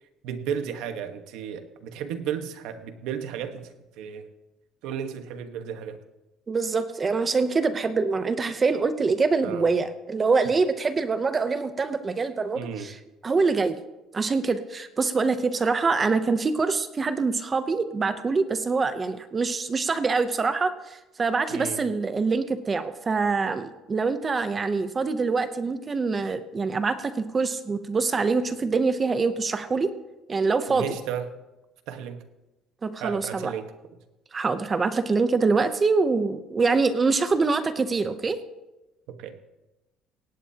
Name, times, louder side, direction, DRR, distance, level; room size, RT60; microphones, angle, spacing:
voice 1, 0.2-3.7 4.0-4.3 4.8-6.0 9.4-9.7 12.5-12.9 21.5-21.8 30.7-31.2 31.9-32.2 33.0-33.7 39.2-39.3, right 8 dB, 70° right, 8 dB, 1.2 m, -33 dB
voice 2, 6.5-12.9 13.2-13.8 14.1-29.9 30.3-30.8 32.8-33.5 34.3-38.4, right 4 dB, 20° right, 11 dB, 0.6 m, -25 dB
17.5 x 17.0 x 2.8 m, 1.0 s
cardioid pair, 175°, 0 cm